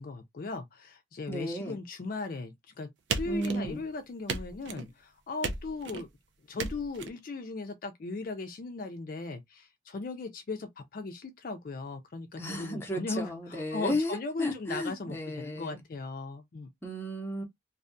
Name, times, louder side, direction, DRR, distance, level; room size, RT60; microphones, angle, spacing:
voice 1, 0.0-6.1 6.5-16.7, left 3 dB, 50° left, 0.4 m, -38 dB
voice 2, 1.3-1.8 3.2-3.8 12.4-15.8 16.8-17.4, equal, 15° left, 0.7 m, -34 dB
sound 1, 3.1-3.9 4.3-4.9 5.4-6.1 6.6-7.1, right 4 dB, 75° right, 0.5 m, -35 dB
2.6 x 2.2 x 2.5 m
head